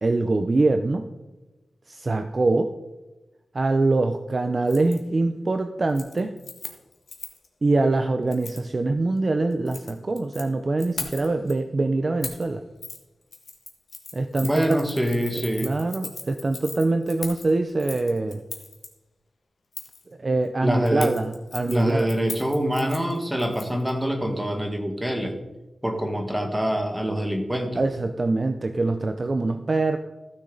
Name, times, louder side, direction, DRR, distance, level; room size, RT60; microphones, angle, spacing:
voice 1, 0.0-1.1 1.9-2.7 3.5-6.3 7.6-12.6 14.1-14.8 15.6-18.4 20.2-22.1 27.8-30.0, right 2 dB, 35° right, 8 dB, 0.5 m, -24 dB
Keys jangling, 4.7-5.0 5.3-5.6 5.9-7.5 8.3-8.6 9.5-10.4 10.8-11.5 12.2-12.5 12.8-13.0 13.3-18.9 19.7-20.0 20.9-23.9 24.2-24.3, left 4 dB, 65° left, 1.5 m, -39 dB
voice 2, 14.4-15.7 20.6-21.1 21.7-25.4 25.8-27.8, equal, 10° right, 4 dB, 1.5 m, -25 dB
15.0 x 6.5 x 3.9 m, 1.1 s
wide cardioid pair, 130°, 0 cm